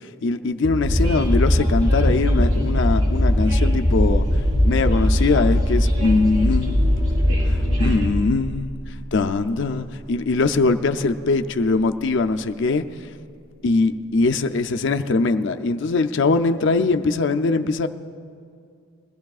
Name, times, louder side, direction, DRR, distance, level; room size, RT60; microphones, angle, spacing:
voice 1, 0.2-4.3 4.6-6.9 7.5-8.7 9.1-12.8 13.6-17.9, left 3 dB, 55° left, 7 dB, 0.5 m, -21 dB
Train, 0.8-8.1, left 1 dB, 75° right, 3.7 m, -20 dB
sound 1, 11.0-12.1, equal, 30° right, 1.7 m, -33 dB
21.5 x 15.0 x 2.4 m, 2.3 s
head